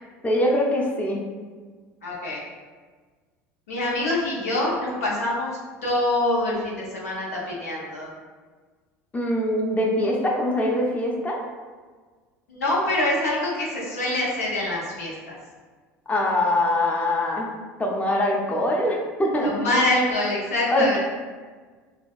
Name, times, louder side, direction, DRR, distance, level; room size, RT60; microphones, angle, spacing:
voice 1, 0.2-1.2 9.1-11.4 16.1-17.5 17.8-19.6 20.7-21.0, left 1 dB, 20° left, -1 dB, 0.6 m, -23 dB
voice 2, 2.0-2.4 3.7-8.1 12.5-15.3 19.4-21.0, left 1 dB, 90° left, -5 dB, 0.7 m, -25 dB
3.3 x 2.2 x 2.3 m, 1.5 s
hypercardioid pair, 75°, 8 cm